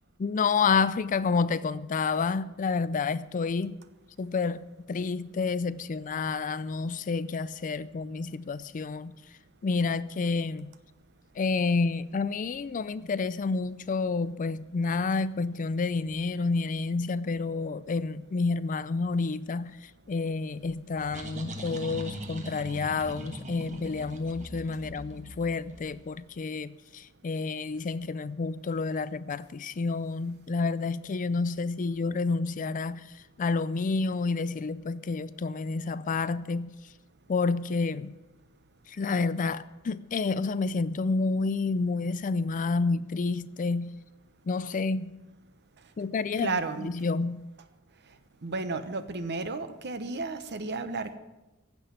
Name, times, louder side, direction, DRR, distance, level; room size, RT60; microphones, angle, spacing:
voice 1, 0.2-3.8 4.2-4.6 4.9-9.1 9.6-10.7 11.4-36.7 37.3-38.1 38.9-43.9 44.5-45.1 46.0-47.4, left 4 dB, 35° left, 0.4 m, -29 dB
sound 1, 20.6-26.2, right 1 dB, 35° right, 1.3 m, -41 dB
voice 2, 46.4-46.9 48.4-51.2, right 3 dB, 50° right, 1.0 m, -33 dB
15.5 x 6.1 x 9.5 m
head